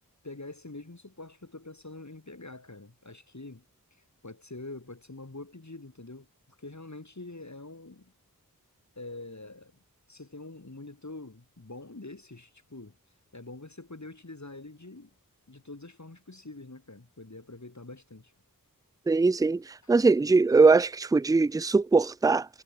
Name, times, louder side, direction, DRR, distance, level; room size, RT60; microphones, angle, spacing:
voice 1, 0.2-3.6 4.2-6.3 6.6-8.1 8.9-9.7 10.1-13.0 13.3-15.1 15.5-18.3 19.8-19.9, left 2 dB, 50° left, 5.1 m, -45 dB
voice 2, 19.1-22.5, right 4 dB, 10° right, 0.3 m, -21 dB
wide cardioid pair, 50°, 36 cm